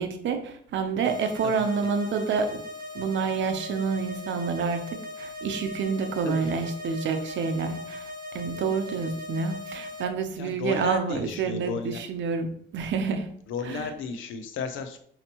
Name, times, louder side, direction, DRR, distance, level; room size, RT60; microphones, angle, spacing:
voice 1, 0.0-2.6 2.9-4.8 5.2-8.1 8.3-13.3 13.7-13.9, right 5 dB, 70° right, 7 dB, 0.7 m, -28 dB
sound 1, 1.0-10.0, left 2 dB, 45° right, 1.2 m, -39 dB
voice 2, 10.4-12.0 13.5-15.0, left 5 dB, 80° left, 8 dB, 0.6 m, -34 dB
5.2 x 2.8 x 2.9 m, 0.62 s
cardioid pair, 90°, 20 cm